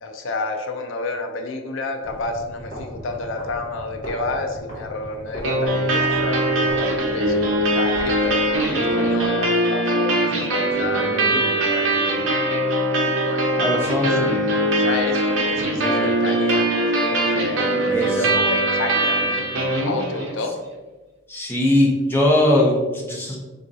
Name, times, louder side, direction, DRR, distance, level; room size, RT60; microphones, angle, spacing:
voice 1, 0.0-12.2 13.0-19.2 19.8-20.6, left 3 dB, 65° left, 4 dB, 0.4 m, -30 dB
sound 1, 2.0-9.3, equal, 25° left, 1.4 m, -38 dB
sound 2, 5.4-20.4, right 1 dB, 65° right, 0.7 m, -21 dB
voice 2, 10.9-11.4 13.6-14.4 17.9-18.4 21.3-23.4, left 1 dB, 10° left, -4 dB, 0.8 m, -21 dB
3.8 x 2.5 x 4.0 m, 1.2 s
head